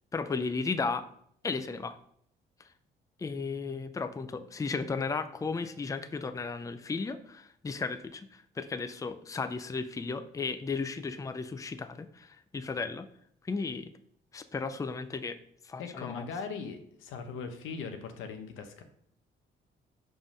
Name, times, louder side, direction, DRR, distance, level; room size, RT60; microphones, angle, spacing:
voice 1, 0.1-1.1 1.4-2.0 3.2-13.1 13.4-13.9 14.3-15.4 15.6-16.2, left 4 dB, 15° left, 11 dB, 0.4 m, -34 dB
voice 2, 15.8-18.8, left 5 dB, 85° left, 7 dB, 0.9 m, -39 dB
5.0 x 3.7 x 5.3 m, 0.67 s
cardioid pair, 90°, 20 cm